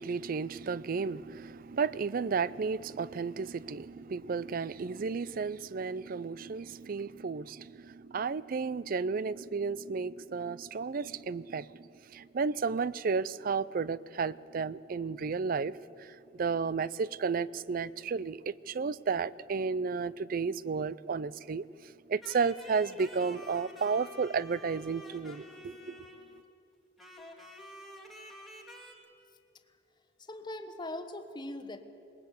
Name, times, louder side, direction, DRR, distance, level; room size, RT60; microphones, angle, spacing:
voice 1, 0.0-21.7 22.1-26.0, right 5 dB, 50° right, 0.4 m, -33 dB
sound 1, 22.2-26.5 27.0-28.9, equal, ahead, 2.2 m, -49 dB
voice 2, 30.2-31.8, left 1 dB, 25° left, 1.2 m, -40 dB
20.5 x 20.0 x 8.1 m
head